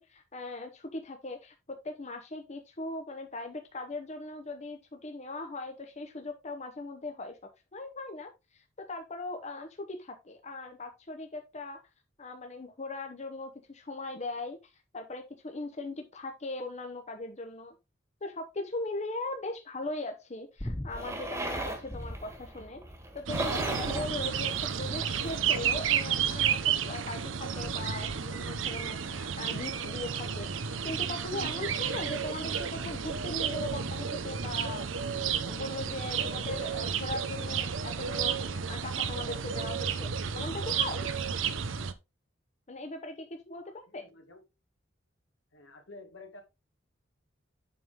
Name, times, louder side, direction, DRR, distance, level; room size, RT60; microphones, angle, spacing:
voice 1, 0.0-7.4 7.7-8.6 8.9-11.8 12.2-14.6 14.9-17.7 18.2-22.8 23.1-41.1 42.7-44.0, left 2 dB, 35° left, 5 dB, 0.9 m, -39 dB
sound 1, 20.6-21.2 21.9-22.4 23.7-24.5 25.7-26.2 27.6-28.1 30.4-30.5, left 1 dB, 10° left, 0.6 m, -41 dB
sound 2, 20.9-25.7, right 1 dB, 15° right, 1.6 m, -38 dB
sound 3, 23.3-41.9, right 7 dB, 85° right, 0.7 m, -32 dB
voice 2, 43.5-44.4 45.5-46.4, left 2 dB, 75° left, 5 dB, 1.9 m, -51 dB
7.7 x 5.6 x 3.6 m, 0.25 s
head